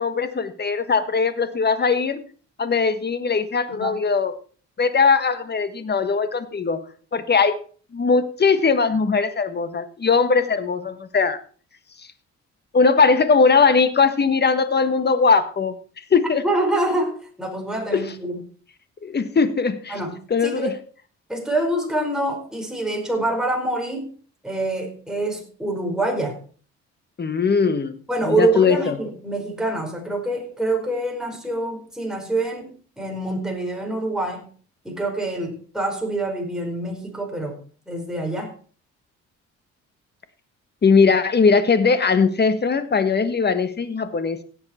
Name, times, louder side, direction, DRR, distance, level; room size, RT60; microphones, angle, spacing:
voice 1, 0.0-2.2 2.6-4.3 4.8-6.8 7.1-7.6 7.9-11.4 12.7-15.7 16.1-16.4 17.9-18.0 19.0-20.0 20.3-20.7 27.2-27.9 28.2-29.0 40.8-44.4, left 5 dB, 35° left, 11 dB, 1.4 m, -20 dB
voice 2, 16.4-18.4 19.9-20.1 20.4-20.7 21.3-24.1 24.4-26.4 28.1-34.5 34.8-37.6 37.9-38.5, right 2 dB, ahead, 0 dB, 4.6 m, -26 dB
17.0 x 7.9 x 4.3 m, 0.42 s
cardioid pair, 90°, 30 cm